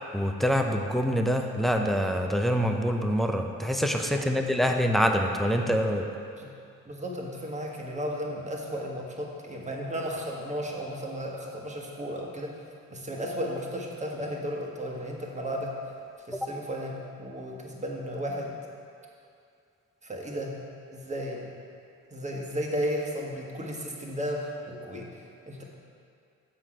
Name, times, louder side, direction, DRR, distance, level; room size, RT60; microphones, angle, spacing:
voice 1, 0.1-6.1, equal, ahead, 3 dB, 0.6 m, -25 dB
voice 2, 4.1-4.6 6.3-6.5 6.9-12.6 12.9-15.8 16.3-18.5 20.0-20.6 20.9-21.6 22.1-25.1 25.5-25.6, equal, 25° right, -1 dB, 1.4 m, -34 dB
7.3 x 6.0 x 4.9 m, 2.4 s
cardioid pair, 90°, 30 cm